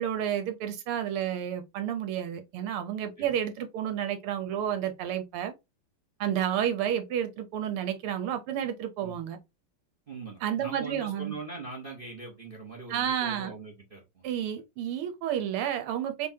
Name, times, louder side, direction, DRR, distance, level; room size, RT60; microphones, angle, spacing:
voice 1, 0.0-5.5 6.2-9.4 10.4-11.4 12.9-13.5 14.2-16.3, right 10 dB, 85° right, 1.8 m, -31 dB
voice 2, 10.1-14.3, right 3 dB, 40° right, 0.8 m, -41 dB
4.0 x 3.3 x 2.8 m
omnidirectional pair, 2.4 m